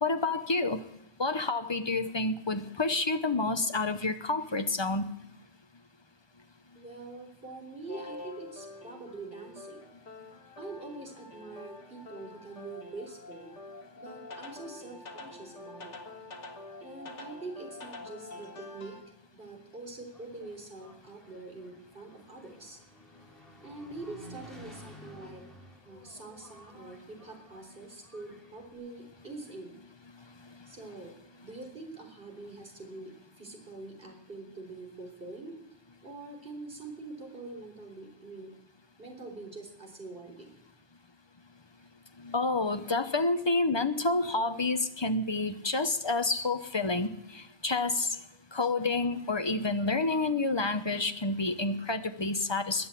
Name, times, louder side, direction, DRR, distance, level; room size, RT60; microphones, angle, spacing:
voice 1, 0.0-0.8 1.2-5.1 42.2-48.2 48.5-52.9, left 3 dB, 25° left, 9 dB, 0.8 m, -29 dB
voice 2, 6.7-9.8 10.6-13.5 14.0-16.0 16.8-19.0 19.3-22.8 23.6-25.4 25.8-29.8 30.7-31.2 31.4-35.6 36.0-38.6 39.0-40.6, right 3 dB, 50° right, 2 dB, 4.0 m, -44 dB
sound 1, 7.9-19.0, left 2 dB, 90° left, 2.0 m, -46 dB
Engine, 19.9-28.7, equal, ahead, 4.5 m, -53 dB
21.0 x 7.9 x 8.4 m, 0.81 s
omnidirectional pair, 1.2 m